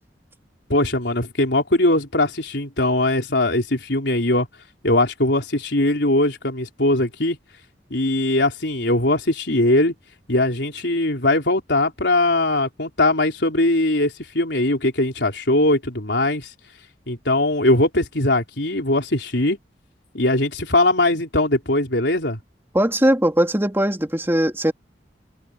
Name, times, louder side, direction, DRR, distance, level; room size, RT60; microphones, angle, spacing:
voice 1, 0.7-4.5 4.8-7.4 7.9-9.9 10.3-16.5 17.1-19.6 20.1-22.4, left 2 dB, 70° left, 4.4 m, -20 dB
voice 2, 22.7-24.7, right 1 dB, 15° right, 2.7 m, -19 dB
head